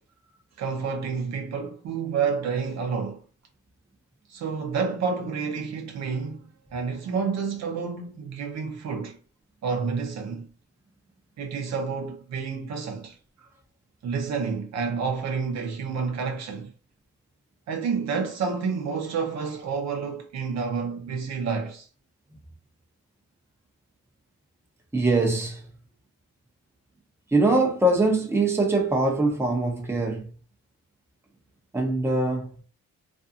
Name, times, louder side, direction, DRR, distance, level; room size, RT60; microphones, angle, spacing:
voice 1, 0.6-3.2 4.3-9.2 9.6-10.5 11.4-13.2 14.0-16.7 17.7-21.9, right 5 dB, 60° right, 0.7 m, -29 dB
voice 2, 24.9-25.6 27.3-30.3 31.7-32.5, right 2 dB, 10° right, 0.7 m, -22 dB
2.5 x 2.3 x 2.6 m
cardioid pair, 90°, 30 cm